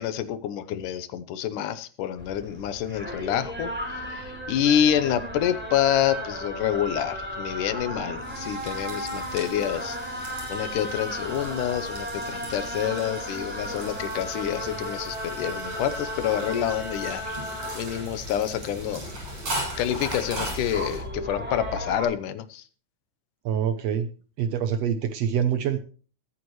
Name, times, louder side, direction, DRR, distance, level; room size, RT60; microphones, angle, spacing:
voice 1, 0.0-10.0 10.5-17.2 17.8-19.1 19.8-22.6, left 10 dB, 80° left, 13 dB, 2.5 m, -27 dB
sound 1, 2.2-22.0, equal, 5° right, 3.5 m, -35 dB
sound 2, 8.0-21.0, right 1 dB, 55° right, 8.5 m, -39 dB
voice 2, 23.5-24.1 24.4-25.8, right 8 dB, 70° right, 10 dB, 1.6 m, -25 dB
22.0 x 9.2 x 3.2 m, 0.39 s
omnidirectional pair, 3.6 m